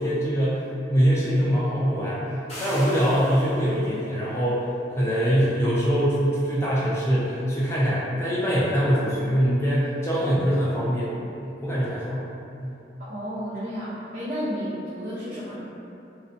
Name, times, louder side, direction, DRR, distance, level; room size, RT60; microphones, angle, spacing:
voice 1, 0.0-11.1 11.4-12.2 12.6-12.8, equal, 15° left, -8 dB, 0.3 m, -23 dB
sound 1, 2.5-3.8, equal, 35° left, 0.9 m, -38 dB
voice 2, 13.1-15.6, equal, 45° right, -12 dB, 0.5 m, -32 dB
2.5 x 2.2 x 2.5 m, 2.7 s
head